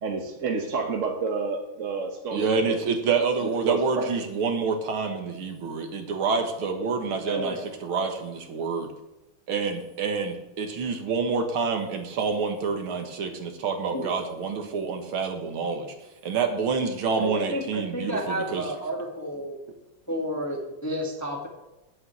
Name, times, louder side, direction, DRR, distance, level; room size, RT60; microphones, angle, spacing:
voice 1, 0.0-2.8 3.6-4.1, right 4 dB, 45° right, 2 dB, 1.1 m, -29 dB
voice 2, 2.3-7.5 7.8-8.9 9.5-15.9 16.2-18.6, right 5 dB, 70° right, 4 dB, 2.3 m, -27 dB
voice 3, 7.3-7.6 13.9-14.1 17.2-19.6 20.1-21.5, equal, 10° left, 1 dB, 1.4 m, -31 dB
8.8 x 7.8 x 8.0 m, 0.97 s
omnidirectional pair, 2.4 m